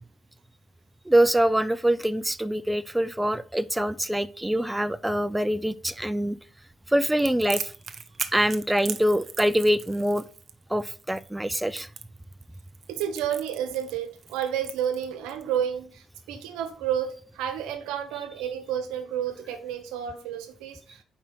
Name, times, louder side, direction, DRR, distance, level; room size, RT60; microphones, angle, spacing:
voice 1, 1.1-6.4 6.9-7.7 8.3-10.2 10.7-11.9, right 1 dB, 10° right, 0.3 m, -24 dB
Crackle, 7.2-15.4, right 6 dB, 50° right, 0.6 m, -38 dB
voice 2, 12.9-21.0, right 9 dB, 85° right, 0.9 m, -31 dB
4.6 x 4.3 x 5.8 m
supercardioid pair, 60°, 0 cm